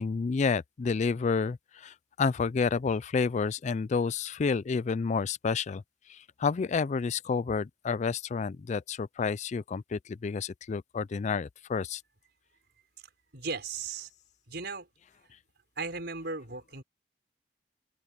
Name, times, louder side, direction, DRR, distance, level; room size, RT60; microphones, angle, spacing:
voice 1, 0.0-5.8 6.1-12.0, left 5 dB, 40° left, 0.4 m, -30 dB
voice 2, 13.3-14.1 14.5-14.9 15.8-16.8, right 4 dB, 65° right, 6.0 m, -36 dB
open air
head